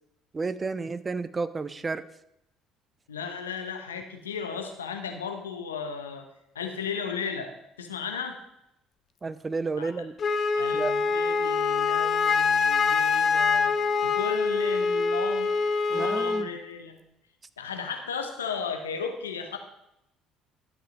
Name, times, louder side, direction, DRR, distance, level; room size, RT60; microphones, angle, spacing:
voice 1, 0.3-2.1 9.2-10.2 10.7-10.9 15.9-16.5, right 4 dB, 25° right, 15 dB, 0.6 m, -31 dB
voice 2, 3.1-6.3 6.5-8.4 9.8-9.9 10.5-13.7 14.0-15.5 15.9-17.0 17.6-19.6, left 6 dB, 85° left, 5 dB, 1.1 m, -35 dB
Wind instrument woodwind instrument, 10.2-16.5, left 5 dB, 40° left, 0.8 m, -24 dB
12.0 x 5.6 x 5.1 m, 0.83 s
hypercardioid pair, 55°, 0 cm